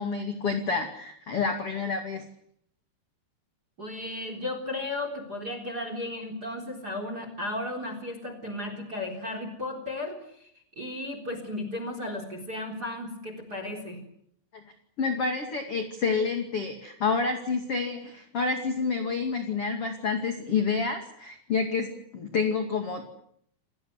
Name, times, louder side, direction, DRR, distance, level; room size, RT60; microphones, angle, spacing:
voice 1, 0.0-2.2 14.5-14.6 15.0-23.1, left 4 dB, 40° left, 5 dB, 2.6 m, -29 dB
voice 2, 3.8-10.5 10.8-14.0, left 2 dB, 20° right, 8 dB, 3.8 m, -35 dB
29.0 x 19.0 x 8.0 m, 0.70 s
omnidirectional pair, 5.2 m